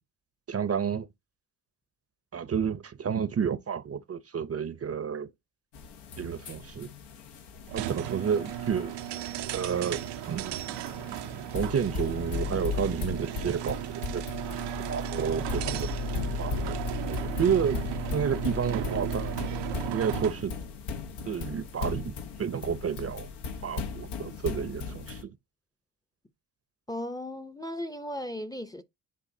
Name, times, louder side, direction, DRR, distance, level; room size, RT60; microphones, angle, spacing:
voice 1, 0.5-1.1 2.3-5.3 6.2-6.9 7.7-9.0 9.5-10.6 11.5-14.2 14.5-19.4 19.9-20.6 21.3-22.1 22.4-23.3 23.6-25.3, right 7 dB, 35° right, 0.6 m, -31 dB
sound 1, 5.7-25.2, left 5 dB, 85° left, 1.2 m, -38 dB
sound 2, 7.7-20.5, right 13 dB, 85° right, 0.7 m, -36 dB
sound 3, 14.2-19.9, left 7 dB, 60° left, 0.7 m, -37 dB
voice 2, 26.9-28.8, left 1 dB, 10° left, 0.6 m, -36 dB
10.0 x 3.7 x 2.7 m
cardioid pair, 80°, 40 cm